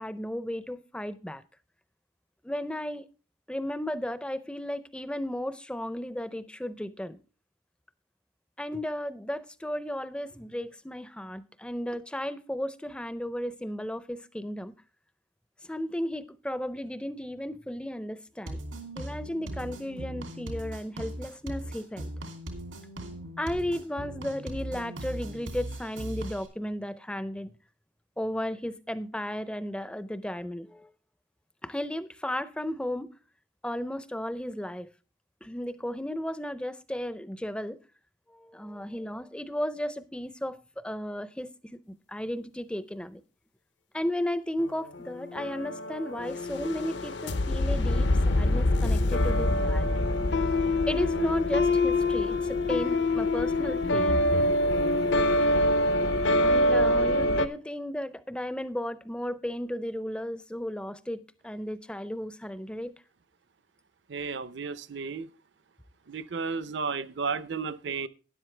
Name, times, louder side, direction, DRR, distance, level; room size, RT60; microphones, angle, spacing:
voice 1, 0.0-1.4 2.4-3.1 3.5-7.2 8.6-14.8 15.6-18.6 19.0-22.1 23.4-27.5 28.2-30.9 31.6-33.1 33.6-34.9 35.4-37.8 38.3-43.2 43.9-50.1 50.9-54.3 56.4-62.9, left 1 dB, 5° left, 0.4 m, -34 dB
sound 1, 18.5-26.5, right 1 dB, 85° right, 2.7 m, -39 dB
sound 2, 44.6-57.5, left 1 dB, 65° left, 0.6 m, -25 dB
voice 2, 64.1-65.3 66.1-68.1, right 5 dB, 65° right, 0.6 m, -33 dB
12.5 x 10.5 x 3.2 m
head